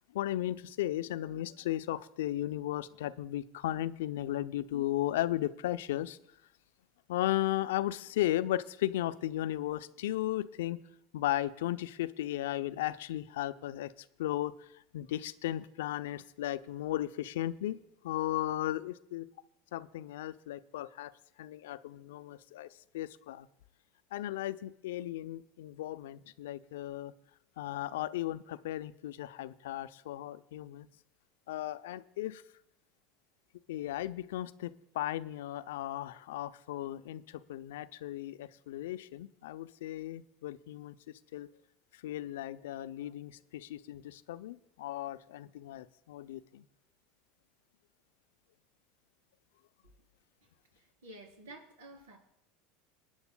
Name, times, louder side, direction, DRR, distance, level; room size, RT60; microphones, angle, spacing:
voice 1, 0.1-6.2 7.1-10.8 11.1-13.9 14.2-14.5 14.9-17.8 18.0-19.3 19.7-21.1 21.4-22.7 22.9-23.5 24.1-27.1 27.6-30.9 31.5-32.4 33.7-41.0 41.3-41.5 42.0-46.6, left 14 dB, 75° left, 14 dB, 0.5 m, -35 dB
voice 2, 50.8-52.2, right 2 dB, 85° right, 1 dB, 3.5 m, -51 dB
27.0 x 9.6 x 2.2 m, 0.82 s
hypercardioid pair, 85°, 0 cm